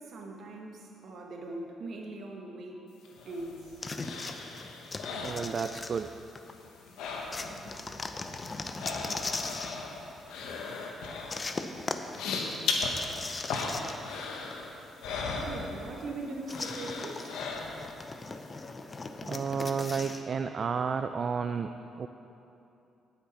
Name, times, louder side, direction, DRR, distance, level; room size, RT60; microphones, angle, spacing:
voice 1, 0.0-2.8 3.2-3.8 7.6-7.7 15.4-17.4, right 2 dB, 65° right, 1 dB, 1.3 m, -40 dB
sound 1, 3.0-6.1 6.4-7.7 8.0-16.1 16.5-18.0 18.4-18.5, left 4 dB, 90° left, 1.1 m, -37 dB
sound 2, 3.8-6.5 7.3-9.8 11.3-14.2 14.5-14.6 16.5-20.2, left 3 dB, 30° left, 0.6 m, -39 dB
voice 2, 5.1-6.1 19.3-21.7 22.0-22.1, right 6 dB, 50° right, 8 dB, 0.3 m, -31 dB
17.0 x 5.9 x 4.2 m, 2.8 s
cardioid pair, 90°, 0 cm